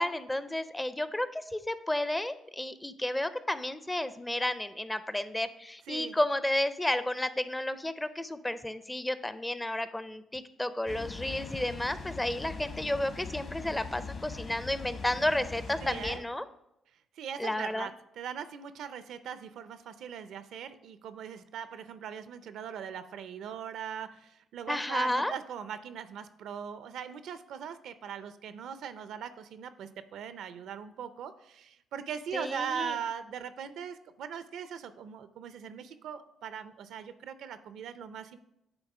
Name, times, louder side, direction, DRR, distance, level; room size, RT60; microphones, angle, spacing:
voice 1, 0.0-16.4 17.4-17.9 24.7-25.3 32.3-33.0, left 1 dB, 10° left, 13 dB, 0.5 m, -32 dB
Water, 10.9-16.2, left 4 dB, 50° left, 1.2 m, -42 dB
voice 2, 15.8-16.2 17.2-17.9 18.2-38.4, right 8 dB, 75° right, 12 dB, 0.5 m, -40 dB
8.9 x 3.5 x 4.8 m, 0.80 s
cardioid pair, 90°, 0 cm